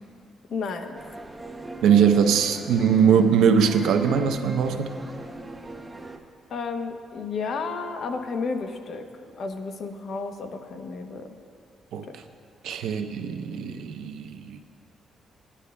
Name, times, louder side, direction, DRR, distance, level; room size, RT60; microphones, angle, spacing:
voice 1, 0.5-1.0 6.5-9.0 9.4-11.3, left 4 dB, 60° left, 5 dB, 0.8 m, -32 dB
sound 1, 1.0-6.2, right 1 dB, 10° right, 0.6 m, -40 dB
voice 2, 1.8-5.0 11.9-12.0 12.6-14.6, right 7 dB, 85° right, 6 dB, 0.7 m, -21 dB
18.0 x 9.8 x 2.2 m, 2.3 s
cardioid pair, 135°, 0 cm